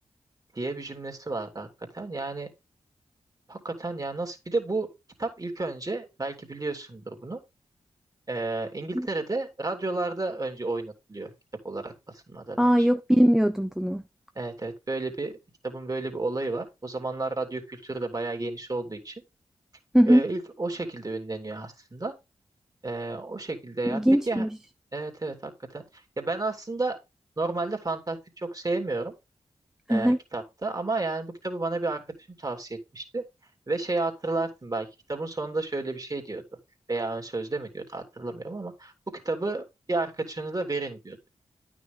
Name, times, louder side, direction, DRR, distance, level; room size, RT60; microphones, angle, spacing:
voice 1, 0.5-1.7 1.9-2.5 3.5-4.9 5.2-7.4 8.3-11.3 11.6-12.9 14.3-15.4 15.6-19.1 20.0-22.1 22.8-24.0 24.3-24.5 24.9-27.0 27.4-29.1 29.9-32.0 32.4-33.2 33.7-36.4 36.9-41.3, right 3 dB, 35° right, 2.9 m, -32 dB
voice 2, 12.6-14.0 19.9-20.2 23.8-24.5 29.9-30.2, equal, 5° right, 0.6 m, -21 dB
9.6 x 6.2 x 3.6 m
cardioid pair, 45°, 12 cm